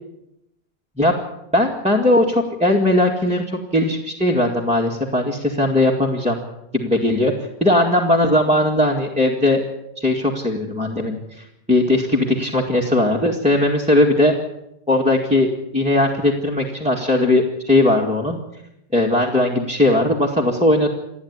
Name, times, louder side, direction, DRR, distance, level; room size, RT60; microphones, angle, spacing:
voice 1, 1.5-6.4 6.7-9.6 10.0-14.3 14.9-15.5 15.7-18.4 18.9-20.9, left 1 dB, 5° right, -1 dB, 2.1 m, -18 dB
28.5 x 9.8 x 9.8 m, 0.85 s
omnidirectional pair, 1.1 m